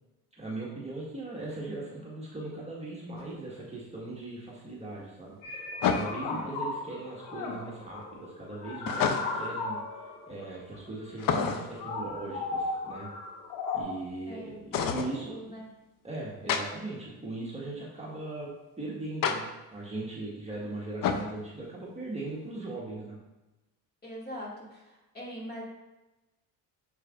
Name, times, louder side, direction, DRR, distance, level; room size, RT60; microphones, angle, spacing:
voice 1, 0.4-9.8 10.3-13.1 13.7-15.5 16.0-23.2, right 2 dB, 15° right, -6 dB, 1.7 m, -39 dB
sound 1, 3.2-3.3 5.8-6.4 8.9-9.5 11.2-11.8 14.7-15.1 16.5-16.6 19.2-19.4 21.0-21.3, left 6 dB, 50° left, 0.7 m, -28 dB
sound 2, 5.4-13.8, left 3 dB, 90° left, 1.3 m, -36 dB
voice 2, 14.3-15.7 24.0-24.9 25.1-25.6, equal, 20° left, -4 dB, 2.4 m, -42 dB
7.0 x 6.4 x 2.6 m, 1.0 s
supercardioid pair, 75°, 43 cm